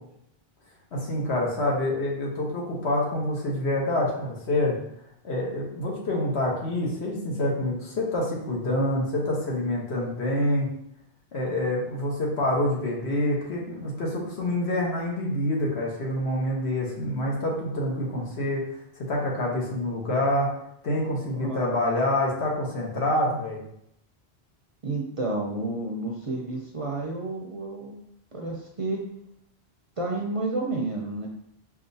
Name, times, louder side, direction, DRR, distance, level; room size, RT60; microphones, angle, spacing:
voice 1, 0.9-4.8 5.2-10.7 11.3-18.7 18.9-20.5 20.8-23.6, left 1 dB, 85° left, -2 dB, 1.3 m, -27 dB
voice 2, 21.3-21.8 24.8-28.0 28.3-29.0 30.0-31.3, right 2 dB, 45° right, -1 dB, 0.4 m, -30 dB
4.8 x 2.4 x 2.6 m, 0.76 s
omnidirectional pair, 1.1 m